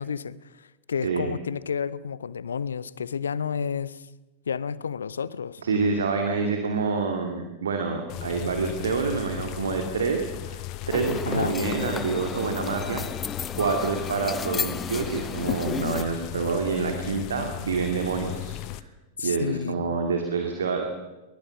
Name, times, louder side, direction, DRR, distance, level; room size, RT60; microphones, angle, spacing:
voice 1, 0.0-4.0 4.5-5.6 11.3-11.5 19.2-19.8, left 6 dB, 70° left, 19 dB, 0.8 m, -31 dB
voice 2, 5.6-13.0 13.5-18.9 19.2-20.8, right 4 dB, 65° right, 4 dB, 2.4 m, -27 dB
sound 1, 8.1-18.8, left 14 dB, 40° left, 1.0 m, -36 dB
sound 2, 10.9-16.0, left 7 dB, 20° left, 0.6 m, -33 dB
22.5 x 21.5 x 6.1 m, 1.1 s
figure-of-eight pair, 90°, 0 cm